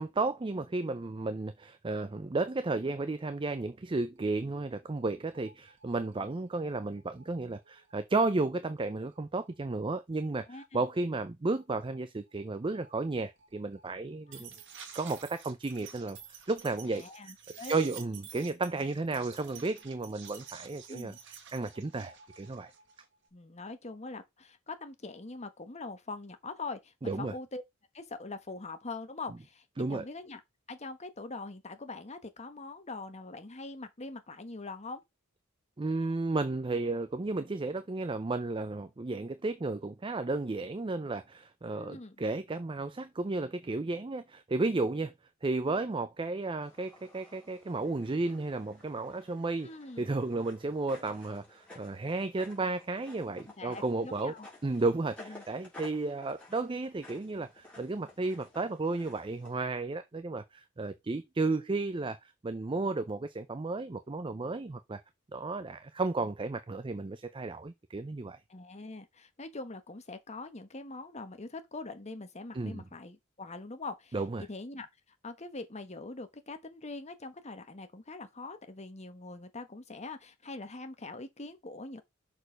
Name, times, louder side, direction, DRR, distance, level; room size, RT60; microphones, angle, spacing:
voice 1, 0.0-14.5 14.9-17.0 17.7-21.1 21.5-22.7 27.0-27.3 29.8-30.1 35.8-45.1 45.4-49.7 50.0-54.3 54.6-62.2 62.4-65.0 65.3-68.4 72.5-72.8 74.1-74.5, right 3 dB, 25° right, 0.5 m, -33 dB
sound 1, 4.2-4.3 4.5-4.6 4.8-8.0 8.8-8.9 9.1-9.2 9.5-9.6 11.5-11.6 11.9-12.0 12.3-23.3, right 7 dB, 60° right, 1.8 m, -51 dB
voice 2, 10.5-10.8 14.3-14.4 16.9-17.8 20.9-21.2 23.3-27.6 27.9-30.4 30.7-35.0 41.8-42.2 49.6-50.0 53.6-54.5 55.2-55.4 68.5-74.9 75.2-82.0, left 3 dB, 30° left, 1.2 m, -43 dB
sound 2, 46.6-59.5, left 2 dB, 5° left, 3.4 m, -54 dB
6.4 x 4.4 x 5.0 m
head